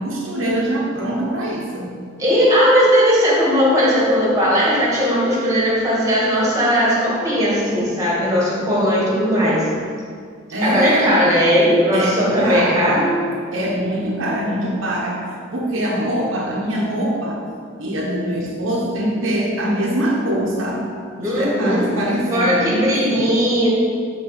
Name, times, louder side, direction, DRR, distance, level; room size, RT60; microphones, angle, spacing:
voice 1, 0.0-2.0 10.5-11.2 11.9-13.0 13.5-15.3 15.5-17.4 17.8-20.9 21.2-23.3, right 1 dB, 70° right, -3 dB, 1.1 m, -23 dB
voice 2, 2.2-9.7 10.6-13.1 21.2-21.9 22.3-23.7, equal, 15° right, -6 dB, 2.0 m, -17 dB
6.2 x 4.4 x 6.6 m, 2.1 s
head